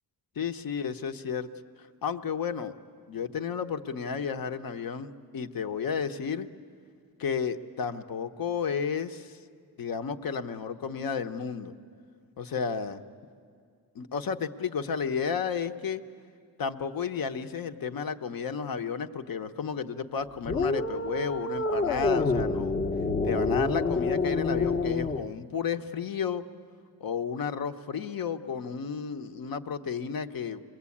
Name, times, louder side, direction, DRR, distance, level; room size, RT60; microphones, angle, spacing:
voice 1, 0.4-1.5 1.8-2.7 3.1-6.5 7.2-9.4 9.8-11.7 12.4-13.0 13.9-16.0 16.6-22.8 23.2-26.4 27.0-30.6, left 6 dB, 55° left, 9 dB, 1.0 m, -32 dB
sound 1, 20.4-25.2, left 3 dB, 30° left, 0.8 m, -27 dB
26.5 x 21.0 x 8.5 m, 2.2 s
wide cardioid pair, 140°, 41 cm